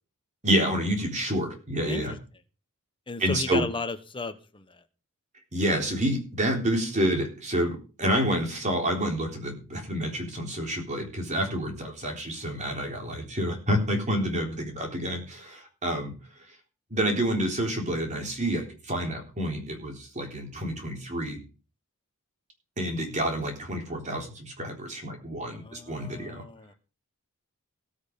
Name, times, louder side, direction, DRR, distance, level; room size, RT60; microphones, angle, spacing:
voice 1, 0.4-2.1 3.2-3.6 5.5-16.1 16.9-21.4 22.8-26.5, equal, 35° right, 2 dB, 3.7 m, -28 dB
voice 2, 3.1-4.8 25.5-26.7, left 3 dB, 25° left, 9 dB, 1.2 m, -35 dB
19.5 x 6.6 x 5.3 m, 0.35 s
head